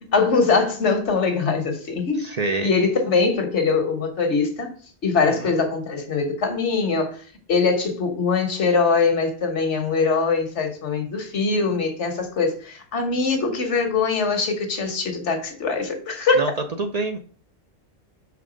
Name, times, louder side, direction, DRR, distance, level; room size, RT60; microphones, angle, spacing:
voice 1, 0.0-2.3 2.6-4.7 5.0-7.1 7.5-16.4, left 4 dB, 90° left, 1.5 m, -22 dB
voice 2, 2.1-2.7 5.3-5.5 16.3-16.5 16.8-17.2, right 3 dB, 50° right, 0.5 m, -26 dB
5.8 x 3.6 x 5.0 m
omnidirectional pair, 1.1 m